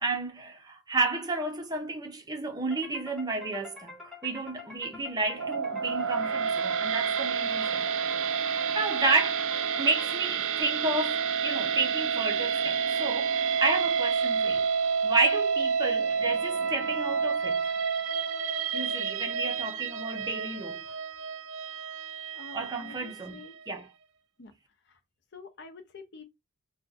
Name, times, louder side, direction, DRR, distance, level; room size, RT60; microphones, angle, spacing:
voice 1, 0.0-3.9 4.2-7.8 8.7-9.4 9.8-14.7 15.0-17.7 18.7-20.8 22.5-23.9, right 3 dB, 20° right, 0.6 m, -31 dB
sound 1, 2.7-10.6, left 3 dB, ahead, 0.9 m, -47 dB
sound 2, 5.3-23.6, right 6 dB, 60° right, 0.4 m, -29 dB
voice 2, 22.3-23.6 24.4-24.5 25.3-26.2, left 3 dB, 50° left, 0.7 m, -47 dB
2.6 x 2.2 x 4.0 m
head